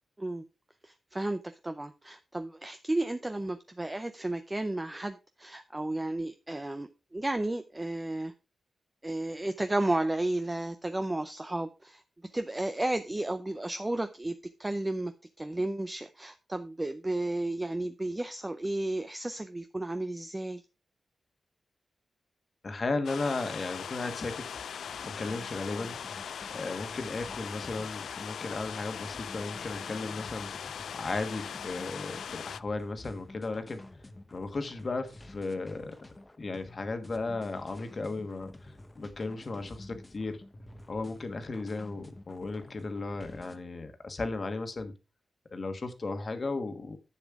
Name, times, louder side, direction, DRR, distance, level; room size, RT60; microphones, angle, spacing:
voice 1, 0.8-8.3 9.0-12.0 12.3-15.1 15.4-20.6, right 1 dB, 15° right, 9 dB, 0.5 m, -33 dB
voice 2, 22.6-24.6 25.0-26.0 26.5-33.9 34.3-36.0 36.4-40.4 40.9-44.9 45.5-47.0, left 3 dB, 35° left, 8 dB, 1.4 m, -35 dB
sound 1, 23.0-32.6, left 8 dB, 85° left, 0.3 m, -40 dB
sound 2, 24.8-43.6, left 1 dB, 15° left, 0.9 m, -50 dB
10.5 x 7.2 x 3.6 m, 0.29 s
wide cardioid pair, 145°, 0 cm